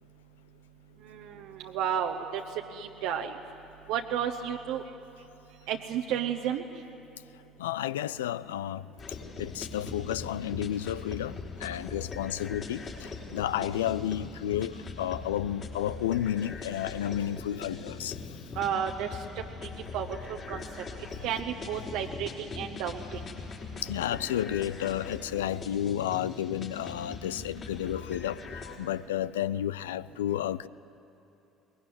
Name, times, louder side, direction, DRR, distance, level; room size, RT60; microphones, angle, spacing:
voice 1, 1.1-2.4 2.7-3.4 3.9-4.8 5.7-6.6 18.6-19.1 19.9-20.6 21.2-23.2, right 9 dB, 60° right, 1.0 m, -32 dB
voice 2, 7.6-8.8 9.4-18.2 21.1-21.3 23.8-30.7, left 11 dB, 75° left, 0.4 m, -32 dB
sound 1, 9.0-28.8, left 4 dB, 40° left, 4.4 m, -41 dB
23.0 x 20.5 x 9.5 m
figure-of-eight pair, 60°, 0 cm